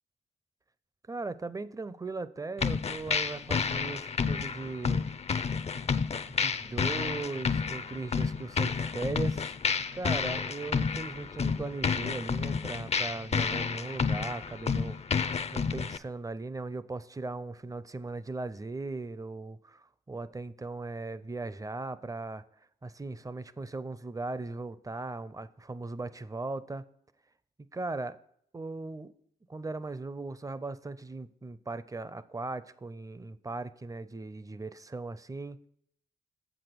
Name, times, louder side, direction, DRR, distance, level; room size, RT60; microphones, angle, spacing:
voice 1, 1.1-5.1 6.3-9.6 9.9-22.4 22.8-26.8 27.7-28.2 28.5-29.1 29.5-35.7, right 3 dB, 20° right, 0.5 m, -38 dB
sound 1, 2.6-16.0, left 5 dB, 40° left, 0.5 m, -30 dB
7.4 x 6.1 x 6.8 m
cardioid pair, 70°, 18 cm